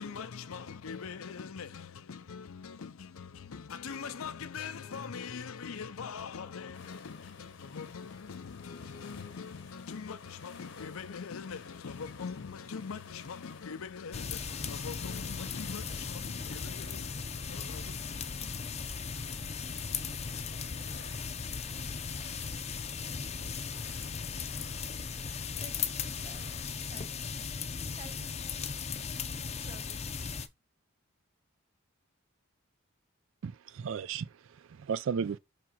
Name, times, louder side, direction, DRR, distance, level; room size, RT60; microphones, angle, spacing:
voice 1, 0.0-19.7, left 6 dB, 80° left, 0.6 m, -43 dB
sound 1, 6.7-26.7, left 5 dB, 55° left, 0.9 m, -54 dB
sound 2, 14.1-30.5, left 6 dB, 30° left, 0.5 m, -37 dB
voice 2, 25.6-29.1 29.6-30.0, right 2 dB, 30° right, 1.4 m, -54 dB
voice 3, 33.4-35.4, right 6 dB, 65° right, 0.4 m, -35 dB
5.9 x 3.7 x 4.5 m
head